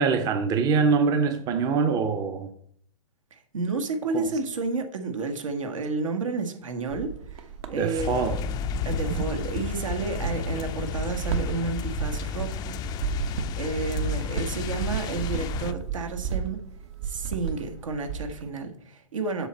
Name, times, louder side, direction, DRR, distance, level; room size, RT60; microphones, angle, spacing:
voice 1, 0.0-2.5 4.1-4.3 7.7-8.4, right 5 dB, 25° right, 0.7 m, -24 dB
voice 2, 3.3-8.1 8.8-12.8 13.3-16.6 17.0-19.5, right 3 dB, 70° right, 1.5 m, -31 dB
sound 1, 6.9-18.5, right 7 dB, 55° right, 1.0 m, -34 dB
sound 2, 8.0-15.7, left 8 dB, 25° left, 0.5 m, -32 dB
7.8 x 6.4 x 4.2 m
figure-of-eight pair, 115°, 17 cm